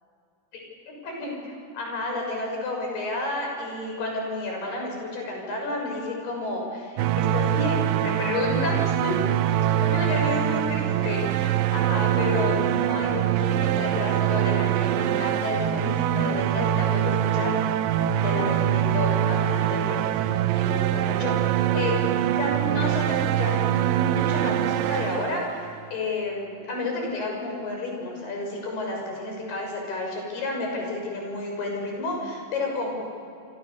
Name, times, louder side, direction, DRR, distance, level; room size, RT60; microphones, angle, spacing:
voice 1, 0.5-9.2 9.8-17.5 18.2-21.4 21.7-22.0 22.4-25.5 25.9-33.0, left 2 dB, 70° left, 0 dB, 8.4 m, -31 dB
sound 1, 7.0-25.9, right 11 dB, 75° right, 2.1 m, -24 dB
27.0 x 27.0 x 7.0 m, 2.6 s
omnidirectional pair, 4.8 m